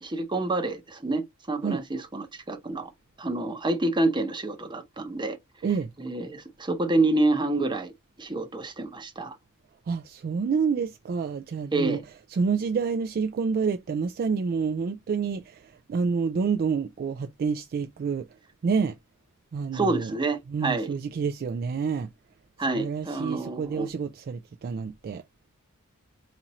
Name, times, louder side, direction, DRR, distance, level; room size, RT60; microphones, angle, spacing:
voice 1, 0.0-2.9 3.2-5.4 6.0-7.9 8.2-9.4 11.7-12.0 19.7-20.9 22.6-23.9, right 2 dB, 20° right, 0.8 m, -28 dB
voice 2, 9.9-18.2 18.6-18.9 19.5-20.2 20.5-22.1 22.7-25.2, right 5 dB, 40° right, 0.3 m, -28 dB
4.1 x 2.5 x 2.9 m
head